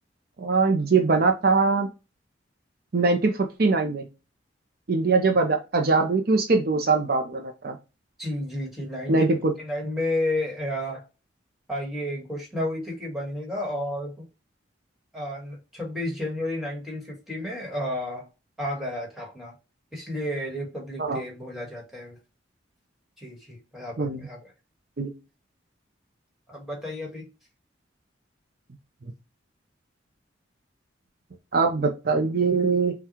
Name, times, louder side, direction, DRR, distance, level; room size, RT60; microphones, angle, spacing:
voice 1, 0.4-1.9 2.9-4.0 4.9-7.8 9.1-9.4 21.0-21.2 24.0-24.2 25.0-25.1 31.5-32.9, right 4 dB, 50° right, 0.5 m, -22 dB
voice 2, 8.2-9.2 9.6-11.0 11.7-14.2 15.1-18.2 18.6-19.5 19.9-22.2 23.2-24.5 26.5-27.3, left 1 dB, ahead, 1.5 m, -32 dB
5.7 x 2.3 x 2.9 m
head